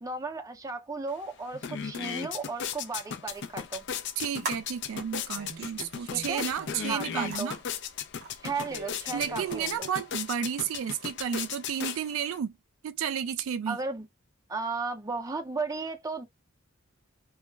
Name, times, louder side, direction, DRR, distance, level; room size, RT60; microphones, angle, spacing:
voice 1, 0.0-3.9 6.1-6.5 6.9-7.5 8.4-9.8 13.7-14.1 14.5-16.3, right 4 dB, 15° right, 0.5 m, -35 dB
sound 1, 1.1-1.2 1.5-12.4, left 7 dB, 60° left, 0.4 m, -37 dB
sound 2, 3.3-9.8, right 3 dB, 50° right, 0.7 m, -43 dB
voice 2, 4.2-7.6 9.1-12.6 12.8-13.8, right 8 dB, 75° right, 0.3 m, -32 dB
2.3 x 2.0 x 3.2 m
head